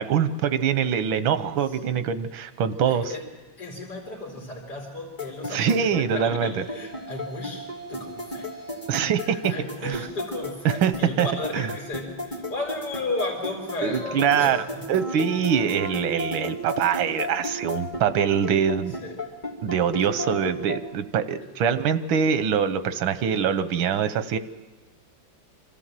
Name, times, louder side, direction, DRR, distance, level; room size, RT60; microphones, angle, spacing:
voice 1, 0.0-3.0 5.5-6.6 8.9-9.5 9.8-10.0 10.6-11.3 11.5-11.6 13.8-14.6 14.9-19.0 19.6-24.4, right 8 dB, 90° right, 12 dB, 1.6 m, -24 dB
voice 2, 1.7-2.1 2.9-3.3 3.6-8.8 9.2-15.0 15.3-15.4 18.9-19.2 20.1-20.2 21.4-21.5, left 2 dB, 55° left, -3 dB, 3.6 m, -35 dB
sound 1, 5.2-20.8, left 2 dB, 25° left, 3.0 m, -33 dB
sound 2, 5.9-15.1, right 4 dB, 30° right, 6.5 m, -47 dB
25.5 x 14.0 x 7.5 m, 1.3 s
omnidirectional pair, 2.1 m